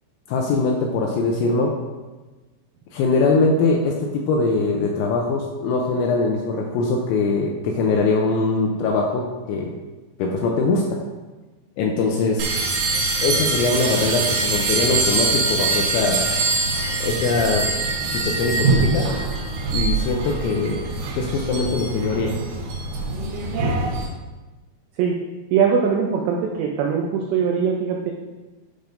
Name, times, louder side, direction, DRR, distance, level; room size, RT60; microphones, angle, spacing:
voice 1, 0.3-1.8 2.9-9.7 10.2-11.0 11.8-12.5 13.2-16.4 17.0-17.7 18.1-19.1 19.7-20.8 21.1-22.4, left 3 dB, 85° left, 1 dB, 2.7 m, -22 dB
sound 1, 12.4-24.1, right 3 dB, 70° right, 2.9 m, -23 dB
voice 2, 25.5-28.1, right 6 dB, 90° right, 0 dB, 2.4 m, -21 dB
12.0 x 5.2 x 2.6 m, 1.2 s
omnidirectional pair, 5.8 m